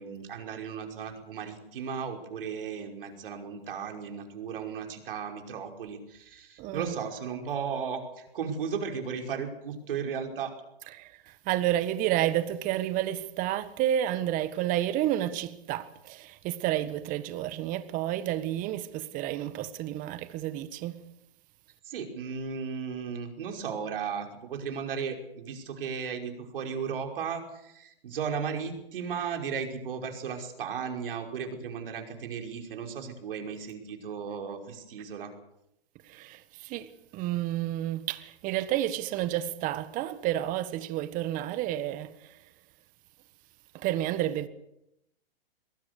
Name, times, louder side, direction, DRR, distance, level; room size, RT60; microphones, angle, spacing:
voice 1, 0.0-10.5 21.9-35.3, right 6 dB, 60° right, 5.4 m, -35 dB
voice 2, 6.6-6.9 10.9-21.1 36.0-42.4 43.7-44.5, right 13 dB, 25° right, 1.5 m, -30 dB
23.0 x 20.5 x 6.8 m
hypercardioid pair, 135°, 30 cm